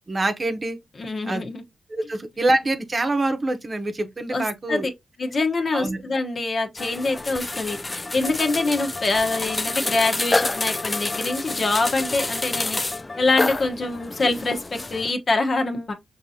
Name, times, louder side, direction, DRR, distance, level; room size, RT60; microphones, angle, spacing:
voice 1, 0.1-0.8 1.3-1.4 1.9-4.9 5.7-6.0, right 2 dB, 40° right, 0.9 m, -25 dB
voice 2, 1.0-1.6 4.3-4.8 5.2-12.8 13.2-15.9, left 3 dB, 50° left, 1.0 m, -25 dB
sound 1, 6.8-15.1, left 2 dB, 25° left, 0.3 m, -28 dB
5.8 x 2.8 x 2.7 m
cardioid pair, 65°, 0 cm